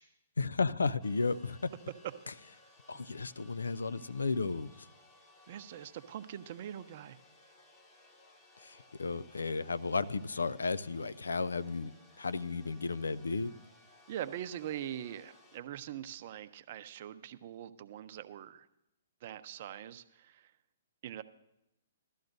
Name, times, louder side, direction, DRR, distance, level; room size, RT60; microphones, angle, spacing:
voice 1, 0.4-1.6 2.9-4.9 8.6-11.9 12.2-13.5, left 4 dB, 85° left, 16 dB, 0.4 m, -33 dB
sound 1, 1.0-15.6, left 2 dB, 20° left, 1.7 m, -61 dB
voice 2, 5.5-7.2 14.1-18.7 19.2-20.5 21.0-21.2, right 11 dB, 50° right, 11 dB, 0.6 m, -43 dB
16.0 x 12.5 x 2.7 m, 0.86 s
hypercardioid pair, 130°, 0 cm